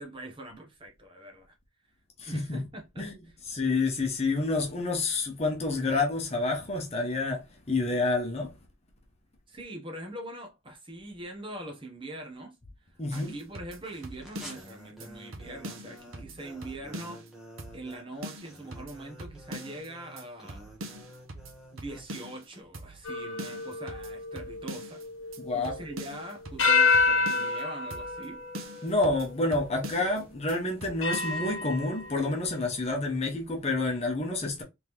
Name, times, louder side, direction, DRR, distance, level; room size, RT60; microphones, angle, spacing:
voice 1, 0.0-1.5 2.2-3.1 9.5-12.6 13.1-17.2 17.7-20.7 21.7-25.0 25.5-28.4, right 1 dB, 25° right, 1.1 m, -42 dB
voice 2, 2.2-2.7 3.0-3.1 3.5-8.5 13.0-13.3 25.4-25.8 28.8-34.6, left 2 dB, 30° left, 1.0 m, -28 dB
sound 1, 13.1-14.7 15.0-15.1 15.3-17.3 17.6-18.0 18.2-19.9 20.2-20.3 20.5-22.5 22.7-23.1 23.4-25.0 25.3-25.4 25.6-27.6 27.9-28.3 28.5-30.2 30.5-30.6 30.8-31.4, right 1 dB, 90° right, 0.9 m, -43 dB
sound 2, 13.8-22.6, equal, ahead, 1.1 m, -50 dB
sound 3, 23.0-26.0 26.6-29.3 30.0-30.1 31.0-32.6, left 4 dB, 70° left, 1.2 m, -28 dB
3.7 x 3.5 x 3.1 m
head